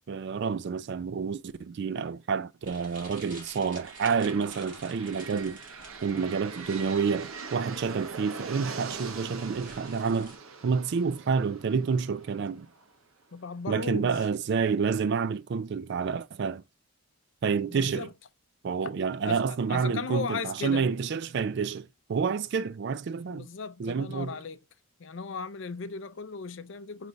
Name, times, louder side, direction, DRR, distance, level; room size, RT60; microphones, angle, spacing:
voice 1, 0.0-5.6 6.0-10.4 10.6-12.7 13.7-16.6 17.4-18.1 18.6-23.5 23.8-24.3, right 5 dB, 55° right, 0.3 m, -29 dB
sound 1, 2.6-10.4, right 2 dB, 40° right, 2.2 m, -50 dB
sound 2, 3.5-13.3, right 4 dB, 80° right, 0.9 m, -43 dB
voice 2, 13.3-14.3 17.7-18.1 19.2-20.9 23.3-24.6 25.0-27.1, left 5 dB, 60° left, 0.5 m, -37 dB
5.1 x 3.3 x 2.5 m
head